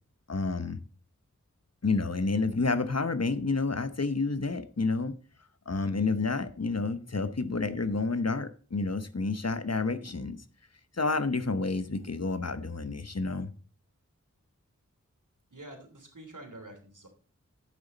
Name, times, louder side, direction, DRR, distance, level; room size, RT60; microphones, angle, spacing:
voice 1, 0.3-0.8 1.8-5.1 5.7-10.4 10.9-13.5, left 3 dB, 55° left, 0.9 m, -29 dB
voice 2, 15.5-17.1, right 1 dB, 80° right, 3.0 m, -47 dB
10.5 x 8.6 x 4.1 m
wide cardioid pair, 45°, 31 cm